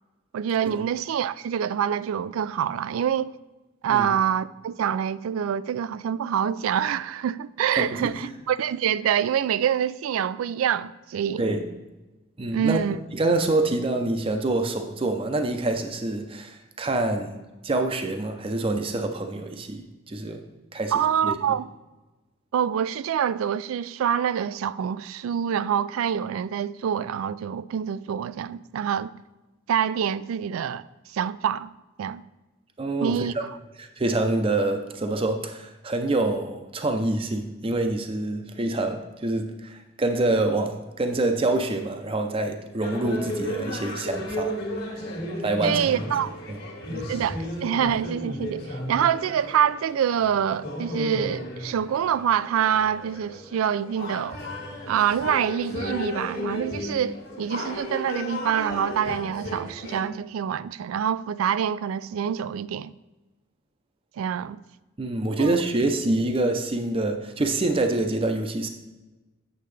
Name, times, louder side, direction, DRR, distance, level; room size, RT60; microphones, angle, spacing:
voice 1, 0.3-3.3 3.8-11.4 12.5-13.0 20.9-21.7 22.5-29.1 29.7-31.7 32.0-32.2 33.0-33.5 45.6-46.3 47.1-48.6 48.9-54.4 54.9-62.9 64.2-64.6 65.4-65.6, right 8 dB, 85° right, 0.3 m, -26 dB
voice 2, 7.8-8.1 11.4-11.7 12.4-12.8 13.1-17.4 17.6-20.4 20.7-20.9 21.2-21.4 32.8-33.3 33.8-44.5 45.4-46.0 46.5-46.6 46.9-47.1 65.0-68.7, right 2 dB, 25° right, 0.5 m, -26 dB
sound 1, 42.8-60.0, equal, 50° left, 1.5 m, -34 dB
8.7 x 6.6 x 3.2 m
head